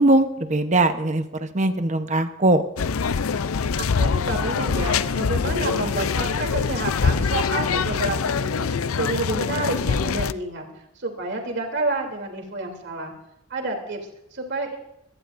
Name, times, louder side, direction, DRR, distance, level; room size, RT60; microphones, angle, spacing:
voice 1, 0.0-2.6, right 2 dB, 35° right, 9 dB, 1.0 m, -20 dB
sound 1, 2.8-10.3, left 5 dB, 85° left, 0.6 m, -24 dB
voice 2, 3.8-10.7 10.9-13.1 13.5-14.8, right 2 dB, 55° right, 2 dB, 3.2 m, -29 dB
24.0 x 18.0 x 2.6 m, 0.82 s
head